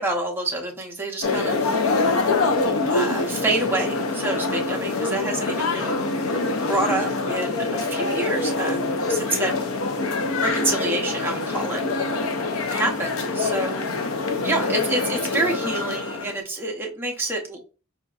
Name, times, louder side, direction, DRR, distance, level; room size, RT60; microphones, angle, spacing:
voice 1, 0.0-1.7 2.0-2.1 2.9-6.1 6.7-9.5 10.4-12.2 12.7-13.9 14.4-17.6, right 2 dB, 10° right, 0 dB, 0.7 m, -27 dB
sound 1, 1.2-16.4, left 3 dB, 90° left, 0.6 m, -25 dB
4.9 x 2.6 x 2.4 m, 0.35 s
head